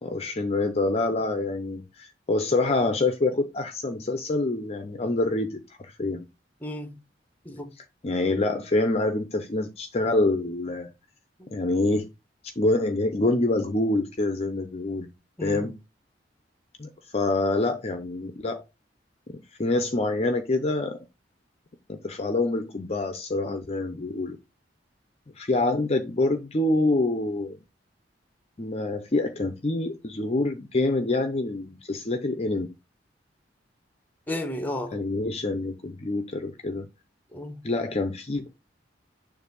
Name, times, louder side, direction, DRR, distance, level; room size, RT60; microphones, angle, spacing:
voice 1, 0.0-6.2 7.8-10.9 11.5-12.1 12.6-15.1 15.4-15.8 16.8-18.6 19.3-21.0 21.9-24.4 25.4-27.6 28.6-32.8 34.9-36.9 37.6-38.5, left 2 dB, 35° left, 0.6 m, -26 dB
voice 2, 6.6-7.0 7.4-7.7 11.4-11.6 15.4-15.6 34.3-35.0 37.3-37.6, left 1 dB, 10° left, 0.9 m, -33 dB
6.8 x 2.6 x 5.3 m
head